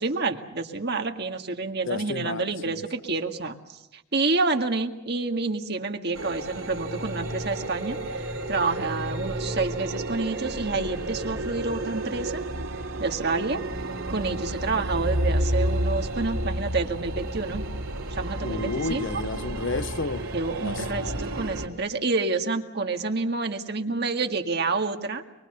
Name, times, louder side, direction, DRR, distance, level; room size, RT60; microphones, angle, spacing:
voice 1, 0.0-12.4 13.0-13.6 14.1-17.6 18.2-19.0 20.3-25.2, right 3 dB, 50° right, 1.9 m, -28 dB
voice 2, 1.8-2.8 18.4-20.3 20.6-21.2, left 3 dB, 60° left, 0.8 m, -32 dB
sound 1, 6.1-21.7, right 1 dB, 80° right, 4.2 m, -31 dB
sound 2, 7.3-12.3, right 2 dB, 25° right, 4.9 m, -40 dB
24.5 x 23.5 x 6.8 m
head